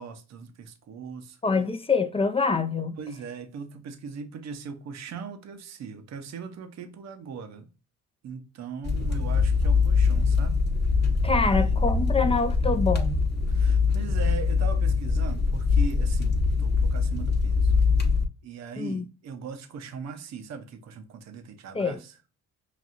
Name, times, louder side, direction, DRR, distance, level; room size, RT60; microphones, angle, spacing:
voice 1, 0.0-1.4 3.0-7.7 8.2-10.6 11.4-12.1 13.5-17.7 18.4-22.2, right 6 dB, 60° right, 0.8 m, -40 dB
voice 2, 1.4-3.0 11.2-13.3 18.8-19.1 21.7-22.0, left 4 dB, 20° left, 0.4 m, -25 dB
sound 1, 8.8-18.2, left 4 dB, 35° left, 0.9 m, -23 dB
5.9 x 2.6 x 2.5 m
cardioid pair, 90°, 30 cm